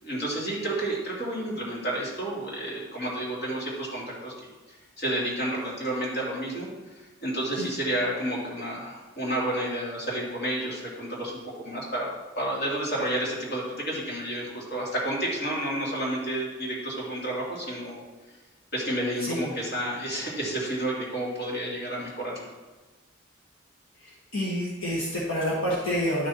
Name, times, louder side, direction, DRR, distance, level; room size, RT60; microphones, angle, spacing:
voice 1, 0.0-4.3 5.0-11.3 11.6-18.0 18.7-22.5, right 1 dB, 50° left, -5 dB, 3.0 m, -30 dB
voice 2, 19.2-19.5 23.9-26.3, equal, 75° left, -6 dB, 1.6 m, -28 dB
12.0 x 6.5 x 3.0 m, 1.2 s
head